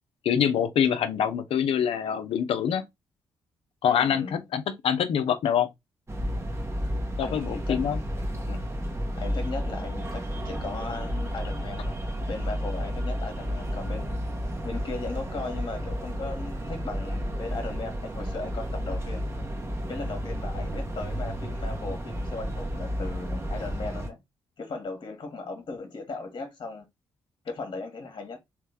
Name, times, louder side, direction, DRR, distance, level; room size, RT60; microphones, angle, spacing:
voice 1, 0.2-2.8 3.8-5.7 7.2-8.0, left 8 dB, 60° left, 0.7 m, -25 dB
voice 2, 4.0-4.4 7.2-7.8 8.4-8.6 9.2-11.9 12.3-14.2 14.6-19.3 19.9-24.2 24.6-26.9 27.4-28.4, left 3 dB, 45° left, 1.3 m, -37 dB
sound 1, 6.1-24.1, equal, 25° right, 1.0 m, -32 dB
3.3 x 3.2 x 3.3 m
hypercardioid pair, 40°, 11 cm